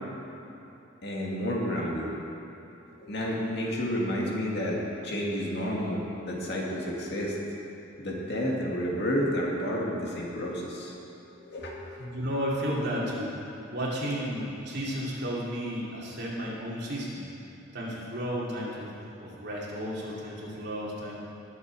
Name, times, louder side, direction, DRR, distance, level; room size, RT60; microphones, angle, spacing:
voice 1, 1.0-2.1 3.0-7.3 8.0-10.9 11.3-11.8 12.8-13.0, equal, 55° left, -3 dB, 2.1 m, -30 dB
voice 2, 12.0-13.3 13.7-17.2 17.7-18.9 19.2-21.2, equal, 55° right, -6 dB, 2.7 m, -33 dB
20.0 x 7.2 x 4.7 m, 2.9 s
head